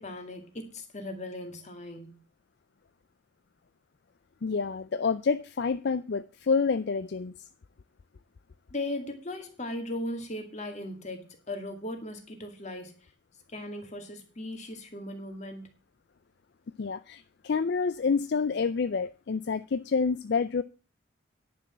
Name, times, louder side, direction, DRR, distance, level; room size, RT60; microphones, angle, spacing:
voice 1, 0.0-2.1 8.7-12.9 13.5-15.7, left 1 dB, 35° left, 2.2 m, -38 dB
voice 2, 4.4-7.3 16.8-20.6, left 5 dB, 55° left, 0.4 m, -28 dB
10.0 x 6.1 x 7.3 m
head